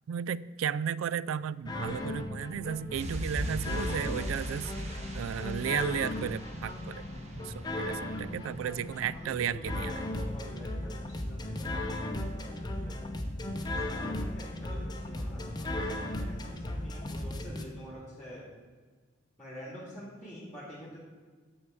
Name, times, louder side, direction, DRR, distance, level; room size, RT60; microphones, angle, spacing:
voice 1, 0.1-7.0 7.4-10.0, right 8 dB, 85° right, 18 dB, 0.3 m, -34 dB
sound 1, 1.7-17.6, left 1 dB, 20° left, 0.7 m, -36 dB
sound 2, 2.9-9.4 9.7-9.8, equal, 35° right, 1.2 m, -40 dB
voice 2, 8.2-8.5 9.1-13.0 13.5-18.4 19.4-21.0, equal, 5° left, -6 dB, 2.0 m, -48 dB
9.5 x 4.5 x 7.6 m, 1.5 s
head